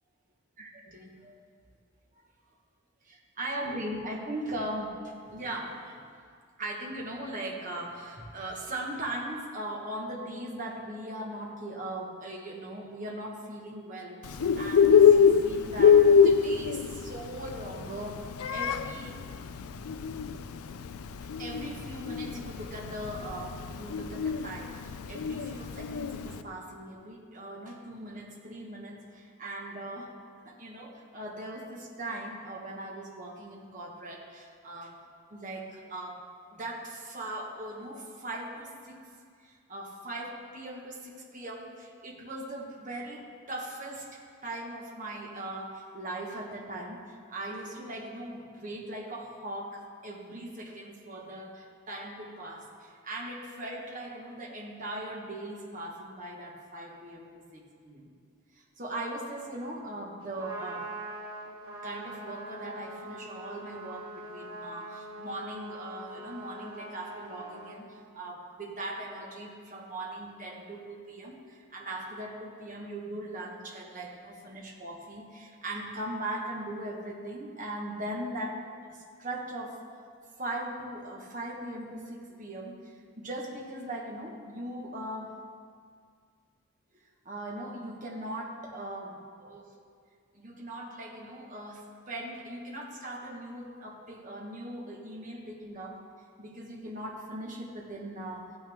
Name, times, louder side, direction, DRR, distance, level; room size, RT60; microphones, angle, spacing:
voice 1, 0.6-1.4 3.0-6.0 6.6-19.2 21.2-30.1 30.4-35.0 35.3-36.2 36.5-39.0 39.4-58.1 58.5-60.9 61.8-78.6 78.9-79.8 80.4-85.3 87.2-89.8 90.3-96.0 96.4-98.6, right 1 dB, 35° right, -1 dB, 1.5 m, -39 dB
Bird, 14.2-26.4, left 7 dB, 90° left, 0.5 m, -24 dB
Trumpet, 60.2-67.8, right 1 dB, 85° right, 2.6 m, -43 dB
15.0 x 9.2 x 3.6 m, 2.1 s
head